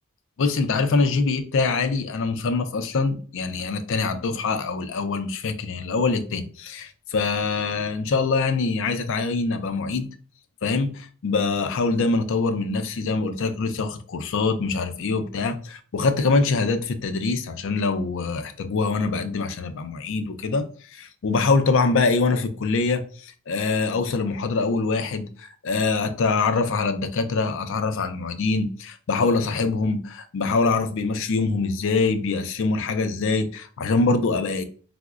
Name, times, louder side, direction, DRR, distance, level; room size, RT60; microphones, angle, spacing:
voice 1, 0.4-10.1 10.6-34.6, left 4 dB, 60° left, 0.4 m, -24 dB
4.6 x 2.0 x 2.3 m
head